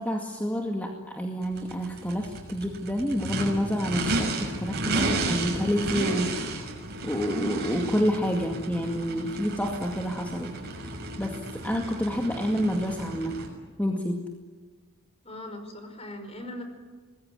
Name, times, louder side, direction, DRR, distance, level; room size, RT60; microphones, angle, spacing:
voice 1, 0.0-6.7 7.0-10.5 10.8-13.4 13.8-14.2, equal, 5° left, 2 dB, 2.1 m, -29 dB
Race car auto racing / Idling / Accelerating revving vroom, 1.4-13.5, right 2 dB, 50° right, 6.4 m, -33 dB
voice 2, 15.2-16.6, left 1 dB, 30° left, 6 dB, 5.1 m, -39 dB
24.5 x 20.5 x 10.0 m, 1.4 s
head